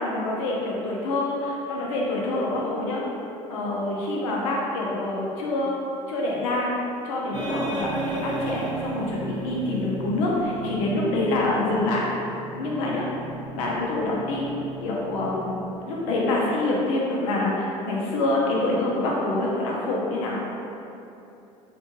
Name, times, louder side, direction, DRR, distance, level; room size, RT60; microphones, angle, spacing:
voice 1, 0.0-3.0 3.5-5.7 6.1-12.0 12.6-13.1 13.6-14.5 14.8-15.5 15.8-20.4, left 2 dB, 80° left, -4 dB, 0.6 m, -26 dB
sound 1, 7.3-16.2, right 2 dB, 25° right, 0.6 m, -35 dB
2.5 x 2.2 x 2.9 m, 2.8 s
hypercardioid pair, 70°, 17 cm